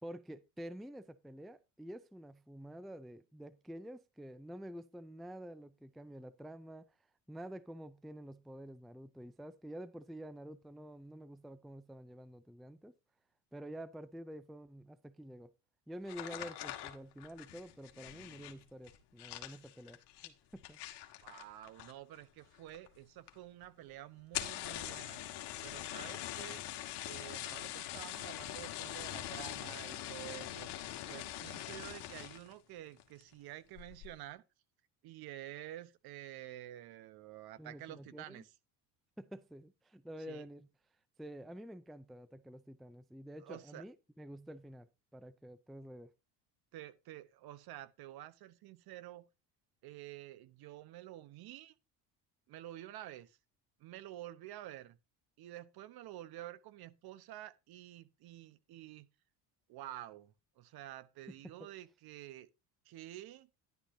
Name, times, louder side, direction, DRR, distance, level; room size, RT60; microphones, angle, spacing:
voice 1, 0.0-6.9 7.3-12.9 13.5-15.5 15.9-20.8 37.6-38.4 39.2-40.7 41.2-44.9 45.1-46.1 61.3-61.4 61.6-61.7, equal, ahead, 0.4 m, -49 dB
sound 1, 16.0-22.2 22.5-23.0 23.3-23.4 23.6-23.7 24.2-32.5 33.0-33.3 33.7-34.1, left 13 dB, 65° left, 1.7 m, -43 dB
voice 2, 21.2-25.2 25.6-26.7 27.0-30.7 31.1-34.4 35.0-38.5 40.3-40.4 43.4-43.8 46.7-49.2 49.8-51.7 52.5-53.4 53.8-55.0 55.4-59.1 59.7-62.5 62.8-63.5, right 14 dB, 55° right, 0.9 m, -49 dB
11.0 x 10.0 x 2.7 m
supercardioid pair, 105°, 44 cm